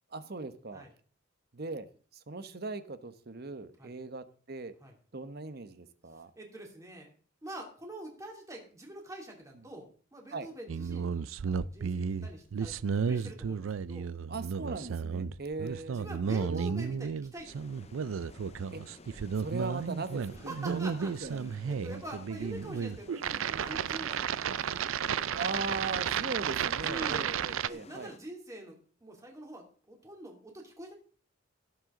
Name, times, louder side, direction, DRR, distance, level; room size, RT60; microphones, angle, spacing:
voice 1, 0.1-0.8 1.5-4.7 5.1-6.3 10.3-10.5 14.3-16.1 16.4-16.8 18.7-18.8 19.4-22.0 23.7-23.8 25.3-28.1, right 3 dB, 50° right, 12 dB, 1.0 m, -39 dB
voice 2, 6.4-7.1 7.4-14.1 15.9-17.7 20.4-24.8 26.8-27.3 27.7-28.7 29.0-30.9, right 1 dB, 15° right, 1 dB, 2.8 m, -45 dB
sound 1, 10.7-27.7, right 7 dB, 90° right, 0.4 m, -33 dB
sound 2, 17.4-28.2, left 3 dB, 35° left, 0.6 m, -53 dB
17.5 x 7.9 x 3.8 m, 0.43 s
head